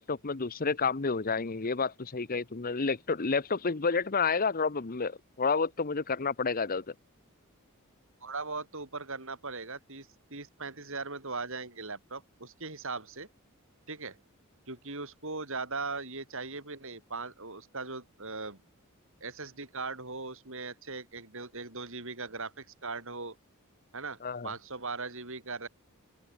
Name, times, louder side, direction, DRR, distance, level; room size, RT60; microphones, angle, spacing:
voice 1, 0.0-6.9 24.2-24.5, left 4 dB, 40° left, 0.9 m, -30 dB
voice 2, 8.2-13.3 13.9-14.2 14.7-18.6 19.2-23.4 23.9-25.7, right 3 dB, 60° right, 7.4 m, -39 dB
open air
head